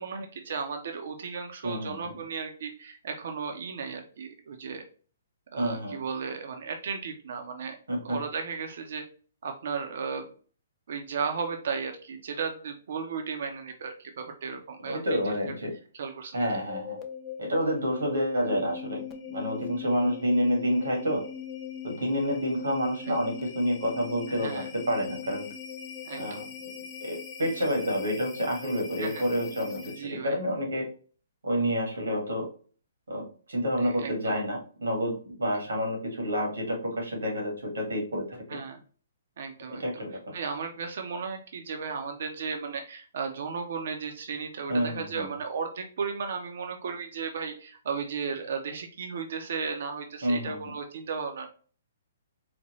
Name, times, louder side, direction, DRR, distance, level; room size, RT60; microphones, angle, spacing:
voice 1, 0.0-4.8 5.5-7.8 8.0-9.0 9.4-10.3 10.9-15.3 15.9-16.4 24.3-24.7 26.0-26.5 29.0-29.2 30.0-30.4 33.8-34.4 38.5-38.8 39.4-51.5, right 5 dB, 60° right, 4 dB, 0.7 m, -35 dB
voice 2, 1.6-2.2 5.6-6.0 7.9-8.2 14.9-15.7 16.3-17.0 17.4-19.0 19.3-21.2 21.8-25.5 26.2-26.5 27.0-30.9 31.4-32.5 33.1-38.4 39.7-40.2 44.7-45.3 50.2-50.6, equal, 90° right, 0 dB, 1.8 m, -29 dB
sound 1, 16.7-30.3, left 8 dB, 20° left, 0.6 m, -40 dB
4.2 x 2.2 x 3.0 m, 0.40 s
hypercardioid pair, 145°, 0 cm